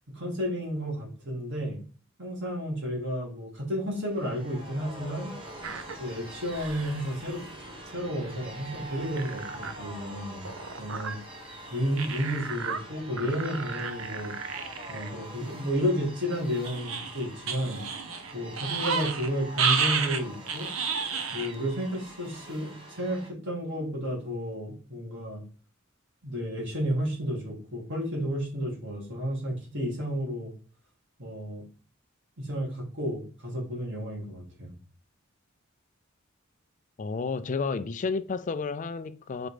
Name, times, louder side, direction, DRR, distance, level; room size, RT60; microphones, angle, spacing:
voice 1, 0.1-1.8 2.2-5.3 6.0-7.5 7.9-10.5 10.8-11.2 11.7-14.3 14.9-17.8 18.3-20.7 21.3-25.4 26.2-30.5 31.2-31.6 32.4-34.7, equal, 65° right, 2.8 m, -32 dB
sound 1, 3.9-23.3, right 1 dB, 25° right, 1.5 m, -44 dB
sound 2, 5.6-6.0 6.5-7.0 7.9-8.0 8.2-8.3 8.7-8.8 9.2-9.7 10.4-11.2 12.0-12.8 13.2-15.1 15.5-15.6 16.6-19.3 19.6-21.5 21.9-22.0, right 6 dB, 80° right, 0.9 m, -31 dB
voice 2, 37.0-39.5, left 4 dB, 40° left, 0.4 m, -31 dB
5.0 x 4.4 x 5.1 m
head